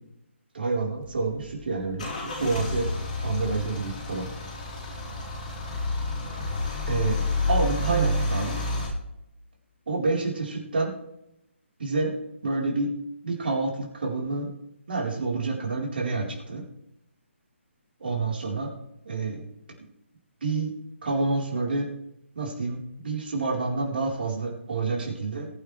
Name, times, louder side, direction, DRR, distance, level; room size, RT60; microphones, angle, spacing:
voice 1, 0.5-2.9 3.2-4.3 6.9-7.2 7.5-8.6 9.9-10.9 11.8-12.1 12.4-12.9 13.2-14.5 14.9-16.6 18.0-18.7 19.0-19.4 19.8-19.9 20.4-20.7 21.0-21.9 22.4-25.5, right 3 dB, 50° right, -1 dB, 4.3 m, -28 dB
Car / Engine starting / Idling, 1.0-8.9, left 2 dB, 40° left, 4.1 m, -29 dB
21.0 x 8.9 x 3.4 m, 0.82 s
figure-of-eight pair, 140°, 7 cm